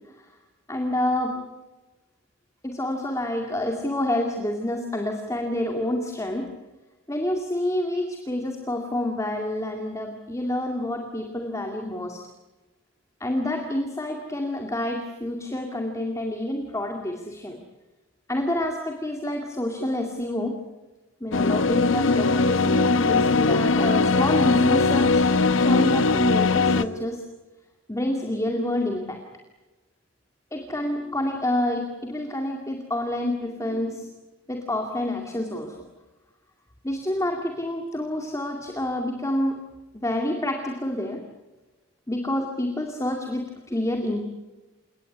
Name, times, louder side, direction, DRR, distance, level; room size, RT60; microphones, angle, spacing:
voice 1, 0.7-1.3 2.6-6.5 7.1-12.2 13.2-17.6 18.3-20.5 21.2-25.2 25.5-27.2 27.9-29.2 30.5-34.1 34.5-35.8 36.8-39.6 39.9-41.2 42.1-44.2, left 1 dB, 15° left, 3 dB, 2.3 m, -28 dB
sound 1, 21.3-26.8, left 3 dB, 70° left, 0.9 m, -20 dB
28.5 x 19.0 x 9.8 m, 1.2 s
head